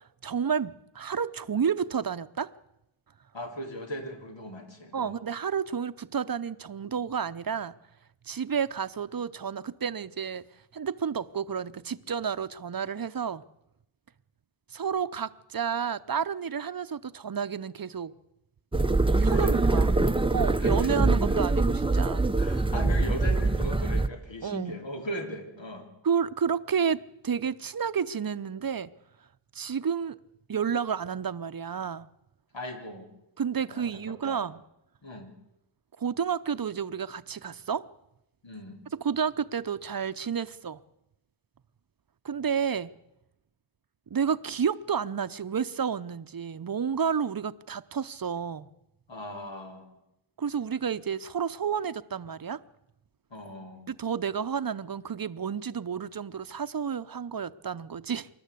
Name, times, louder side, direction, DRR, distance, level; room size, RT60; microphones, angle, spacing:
voice 1, 0.0-2.5 4.9-7.7 8.2-10.4 10.7-13.4 14.7-18.1 19.2-20.0 20.3-22.3 24.4-24.7 26.0-28.9 29.5-30.2 30.5-32.1 33.4-34.6 36.0-37.8 39.0-40.8 42.2-42.9 44.1-48.7 50.4-52.6 53.9-58.3, right 7 dB, 50° right, 0.7 m, -30 dB
voice 2, 3.3-5.2 19.0-19.9 20.6-21.0 21.3-21.4 22.4-25.9 32.5-33.1 33.7-34.4 35.0-35.3 38.4-38.8 49.1-49.9 53.3-53.9, equal, 70° left, 3.7 m, -39 dB
sound 1, 18.7-24.1, right 2 dB, 10° right, 0.6 m, -24 dB
26.0 x 12.0 x 8.4 m
wide cardioid pair, 95°, 46 cm